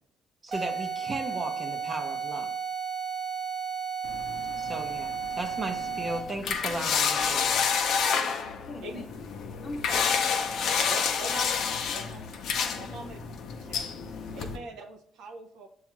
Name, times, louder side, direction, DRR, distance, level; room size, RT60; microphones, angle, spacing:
voice 1, 0.4-2.5 4.6-7.5, right 2 dB, 30° right, 0.5 m, -36 dB
sound 1, 0.5-6.4, right 6 dB, 55° right, 0.9 m, -33 dB
sound 2, 4.0-14.6, left 6 dB, 75° left, 0.5 m, -29 dB
voice 2, 8.3-9.0 9.6-10.3 10.7-11.3 11.6-12.0, left 2 dB, 35° left, 0.7 m, -42 dB
voice 3, 10.9-11.5 11.9-12.2 12.7-13.2 13.6-13.9 14.3-15.7, right 2 dB, 85° right, 0.5 m, -42 dB
6.9 x 2.3 x 3.0 m
cardioid pair, 105°, 0 cm